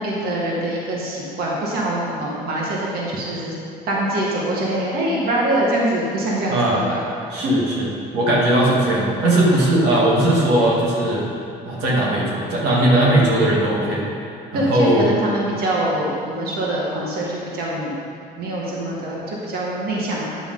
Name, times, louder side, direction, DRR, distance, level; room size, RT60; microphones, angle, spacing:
voice 1, 0.0-3.5 3.9-7.0 7.3-7.5 14.5-17.9 18.4-20.4, right 1 dB, 65° right, -4 dB, 1.7 m, -24 dB
voice 2, 6.5-6.8 7.3-11.2 11.7-14.1 14.5-15.1, right 1 dB, 85° right, -4 dB, 1.8 m, -18 dB
10.0 x 7.0 x 3.9 m, 2.7 s
cardioid pair, 110°, 17 cm